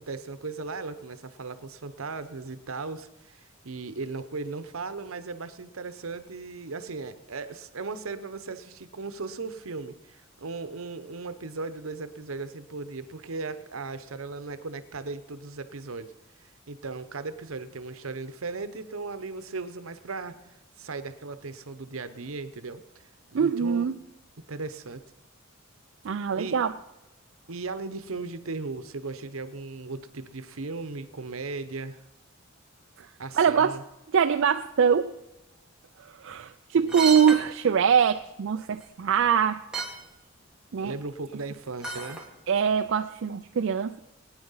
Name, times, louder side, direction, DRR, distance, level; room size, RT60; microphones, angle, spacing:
voice 1, 0.0-16.1 16.4-20.3 20.8-23.9 24.5-25.0 26.3-26.6 27.5-32.0 33.2-33.8 36.8-37.1 40.8-42.3, right 3 dB, 80° right, 12 dB, 0.9 m, -37 dB
voice 2, 23.3-24.0 26.0-26.7 33.0-33.1 33.4-33.8 34.1-35.2 36.2-39.6 40.7-40.9 42.5-44.0, right 7 dB, 60° right, 8 dB, 0.4 m, -23 dB
sound 1, 36.9-37.4 38.8-38.9 39.4-39.5 39.7-40.0 41.8-42.2 42.7-42.8, right 4 dB, 5° right, 2.1 m, -32 dB
19.0 x 9.8 x 5.7 m, 0.96 s
head